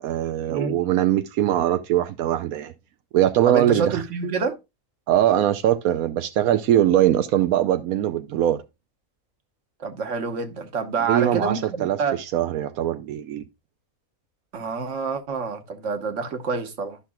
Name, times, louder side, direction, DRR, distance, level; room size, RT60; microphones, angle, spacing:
voice 1, 0.0-2.7 3.1-4.0 5.1-8.6 11.1-13.5, right 11 dB, 90° right, 1.1 m, -21 dB
voice 2, 3.5-4.6 9.8-12.2 14.5-17.0, right 5 dB, 60° right, 1.5 m, -27 dB
13.0 x 5.8 x 2.3 m
omnidirectional pair, 1.5 m